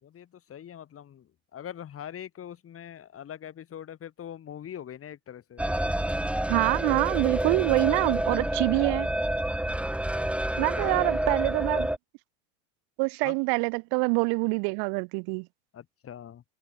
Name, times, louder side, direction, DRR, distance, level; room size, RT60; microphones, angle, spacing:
voice 1, 0.0-5.6 6.9-7.0 7.3-7.7 10.5-11.2 13.2-13.4 15.7-16.4, left 9 dB, 30° left, 5.9 m, -42 dB
sound 1, 5.6-12.0, right 1 dB, 5° right, 3.9 m, -28 dB
voice 2, 6.5-9.1 10.6-11.9 13.0-15.5, right 37 dB, 55° right, 5.8 m, -25 dB
hypercardioid pair, 105°, 43 cm